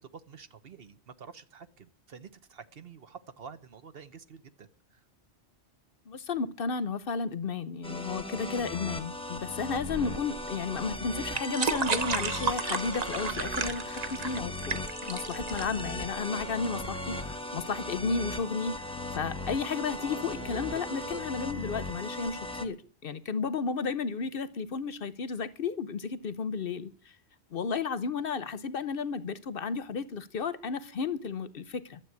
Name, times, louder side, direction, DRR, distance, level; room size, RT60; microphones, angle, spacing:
voice 1, 0.0-5.0, right 6 dB, 60° right, 1.1 m, -49 dB
voice 2, 6.1-26.9 27.5-32.0, left 5 dB, 55° left, 0.9 m, -33 dB
sound 1, 7.8-22.6, left 1 dB, 5° left, 1.1 m, -37 dB
sound 2, 9.8-16.9, right 5 dB, 40° right, 0.9 m, -34 dB
12.5 x 7.7 x 9.5 m
omnidirectional pair, 1.2 m